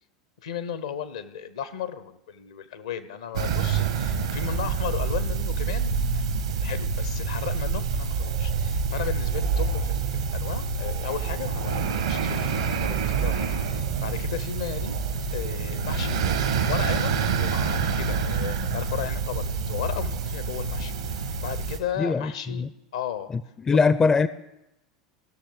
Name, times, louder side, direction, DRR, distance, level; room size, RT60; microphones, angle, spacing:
voice 1, 0.4-12.6 12.8-15.0 15.3-20.9 21.4-23.3 23.7-23.8, left 9 dB, 70° left, 0.7 m, -35 dB
sound 1, 3.3-21.8, right 5 dB, 75° right, 1.1 m, -27 dB
voice 2, 22.0-22.7 23.3-24.3, left 4 dB, 20° left, 0.4 m, -22 dB
17.0 x 6.4 x 3.9 m
figure-of-eight pair, 80°, 3 cm